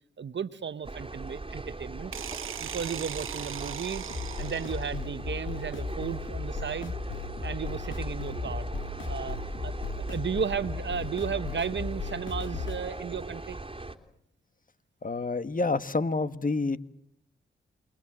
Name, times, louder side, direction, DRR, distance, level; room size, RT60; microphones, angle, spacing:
voice 1, 0.2-2.1 2.6-7.0 7.4-8.7 9.1-13.6, right 6 dB, 65° right, 1.4 m, -34 dB
sound 1, 0.8-14.0, right 2 dB, 25° right, 3.3 m, -39 dB
sound 2, 2.1-5.0, right 9 dB, 80° right, 1.2 m, -39 dB
sound 3, 4.1-12.8, left 5 dB, 70° left, 3.3 m, -37 dB
voice 2, 15.0-16.8, left 3 dB, 40° left, 1.8 m, -28 dB
29.0 x 22.5 x 7.7 m
cardioid pair, 45°, 21 cm